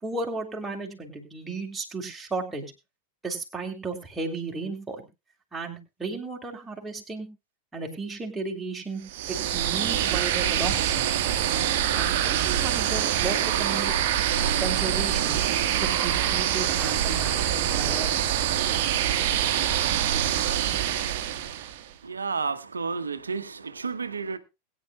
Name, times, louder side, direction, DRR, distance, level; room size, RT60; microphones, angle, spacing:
voice 1, 0.0-2.6 3.2-5.0 5.5-7.3 7.7-9.0 9.3-11.1 11.9-13.9 14.6-18.2 18.6-18.8, right 3 dB, 10° right, 3.3 m, -34 dB
sound 1, 9.1-21.8, right 10 dB, 50° right, 1.3 m, -25 dB
voice 2, 22.0-24.4, right 5 dB, 75° right, 1.0 m, -31 dB
21.0 x 10.0 x 2.3 m
figure-of-eight pair, 90°, 0 cm